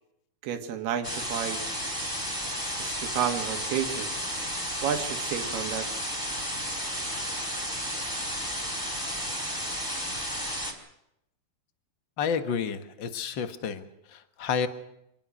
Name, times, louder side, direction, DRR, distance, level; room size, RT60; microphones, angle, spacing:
voice 1, 0.4-1.6 2.8-4.1 4.8-5.9, right 9 dB, 90° right, 7 dB, 3.6 m, -31 dB
sound 1, 1.0-10.7, equal, 5° left, 3.4 m, -32 dB
voice 2, 12.2-14.7, left 6 dB, 65° left, 9 dB, 1.1 m, -30 dB
26.0 x 20.0 x 6.4 m, 0.80 s
omnidirectional pair, 4.5 m